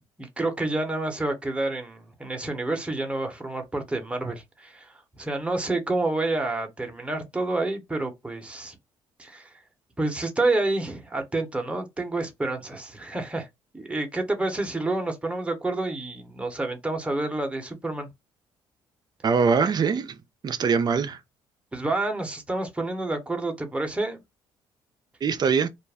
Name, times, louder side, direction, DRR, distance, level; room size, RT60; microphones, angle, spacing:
voice 1, 0.2-8.8 9.2-9.5 10.0-13.5 13.7-18.1 21.7-24.2, right 2 dB, 10° right, 0.9 m, -29 dB
voice 2, 19.2-20.2 20.4-21.2 25.2-25.7, right 5 dB, 40° right, 0.5 m, -22 dB
2.4 x 2.1 x 3.4 m
supercardioid pair, 70°, 10 cm